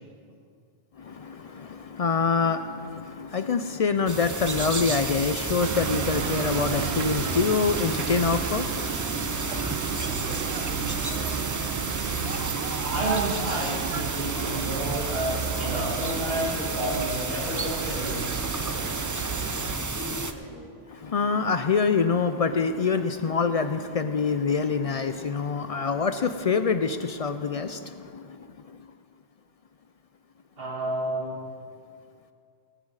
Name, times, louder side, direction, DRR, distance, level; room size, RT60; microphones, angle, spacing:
voice 1, 1.0-8.9 21.0-28.2, left 5 dB, 55° left, 9 dB, 0.4 m, -25 dB
sound 1, 4.1-20.3, right 3 dB, 25° right, 0.4 m, -31 dB
sound 2, 5.6-19.7, right 7 dB, 90° right, 1.0 m, -33 dB
voice 2, 12.9-18.5 19.9-20.8 30.6-31.4, right 1 dB, 65° right, -4 dB, 2.4 m, -31 dB
19.0 x 9.7 x 4.8 m, 2.3 s
omnidirectional pair, 1.1 m